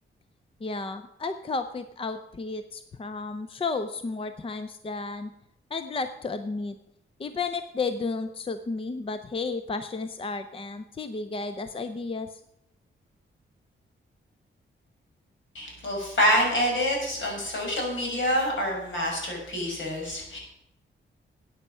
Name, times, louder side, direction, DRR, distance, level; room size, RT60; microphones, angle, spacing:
voice 1, 0.6-5.3 5.7-6.8 7.2-12.4, left 3 dB, 25° left, 10 dB, 0.5 m, -32 dB
voice 2, 15.5-20.4, equal, 65° left, -1 dB, 5.9 m, -26 dB
14.0 x 9.0 x 5.5 m, 0.82 s
wide cardioid pair, 145°, 21 cm